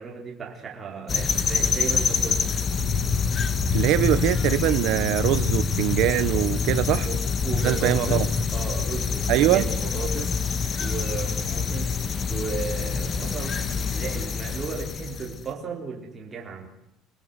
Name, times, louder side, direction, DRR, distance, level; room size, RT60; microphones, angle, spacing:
voice 1, 0.0-2.4 7.0-8.2 8.5-10.3 10.8-11.9 12.3-13.6 13.9-16.7, right 5 dB, 20° right, -1 dB, 4.2 m, -34 dB
sound 1, 1.1-15.4, left 5 dB, 25° left, 1.4 m, -26 dB
voice 2, 3.7-7.1 7.6-8.3 9.3-9.7, right 15 dB, 60° right, 13 dB, 0.8 m, -22 dB
29.0 x 18.5 x 8.2 m, 0.86 s
cardioid pair, 175°, 0 cm